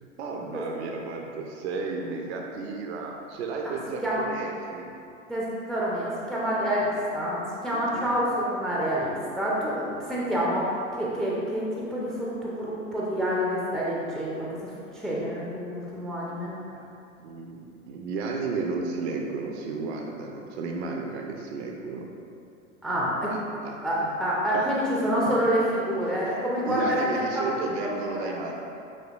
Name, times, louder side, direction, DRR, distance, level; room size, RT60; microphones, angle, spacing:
voice 1, 0.0-4.9 7.7-8.3 16.2-16.4 16.7-16.9 17.2-22.1 23.3-24.1 24.5-24.7 26.7-28.6, right 4 dB, 55° right, 1 dB, 0.5 m, -33 dB
voice 2, 5.3-6.9 7.1-16.5 22.8-23.3 23.8-27.7 28.1-28.4, equal, ahead, -6 dB, 0.4 m, -28 dB
6.5 x 3.2 x 2.3 m, 2.6 s
figure-of-eight pair, 85°, 39 cm